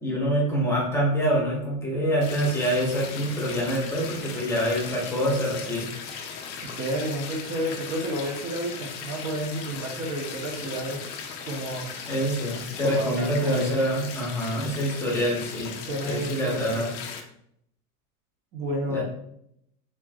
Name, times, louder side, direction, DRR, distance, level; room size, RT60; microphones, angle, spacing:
voice 1, 0.0-5.8 12.1-15.7 16.0-16.9 18.9-19.0, equal, 5° left, -4 dB, 1.0 m, -26 dB
sound 1, 2.2-17.2, left 6 dB, 50° left, 0.7 m, -38 dB
voice 2, 6.6-11.0 11.5-11.9 12.8-13.7 15.8-16.9 18.5-19.0, right 1 dB, 30° right, 0 dB, 1.0 m, -30 dB
4.5 x 3.0 x 2.4 m, 0.73 s
supercardioid pair, 145°, 45 cm